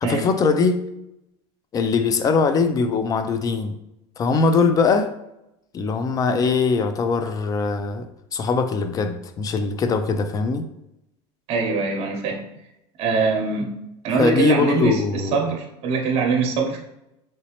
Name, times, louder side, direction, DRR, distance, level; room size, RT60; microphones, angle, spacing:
voice 1, 0.0-0.8 1.7-3.8 4.2-5.1 5.7-8.1 8.3-10.7 14.2-15.4, left 4 dB, 25° left, 9 dB, 0.3 m, -21 dB
voice 2, 11.5-12.5 13.0-13.8 14.0-16.8, right 4 dB, 50° right, 2 dB, 0.8 m, -23 dB
3.2 x 2.9 x 2.9 m, 0.85 s
supercardioid pair, 125°, 14 cm